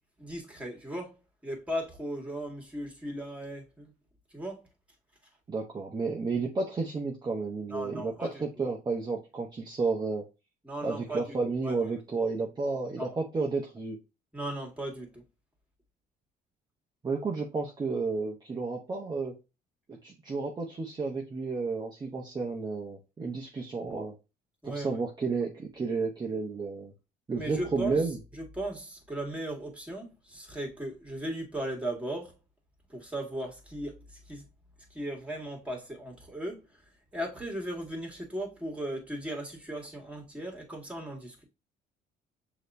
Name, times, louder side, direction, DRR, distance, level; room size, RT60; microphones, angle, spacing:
voice 1, 0.2-1.2 1.4-3.9 4.3-4.6 7.7-8.4 10.6-11.2 11.6-11.9 13.0-13.1 14.3-15.2 24.6-25.0 27.4-28.0 28.4-32.3 32.9-34.4 34.9-36.6 37.1-41.4, right 1 dB, 5° right, 2.0 m, -37 dB
voice 2, 5.5-10.2 10.8-14.0 17.0-19.3 19.9-24.1 24.6-26.9 27.3-28.2, right 4 dB, 25° right, 0.9 m, -32 dB
6.4 x 3.0 x 2.6 m
cardioid pair, 110°, 17 cm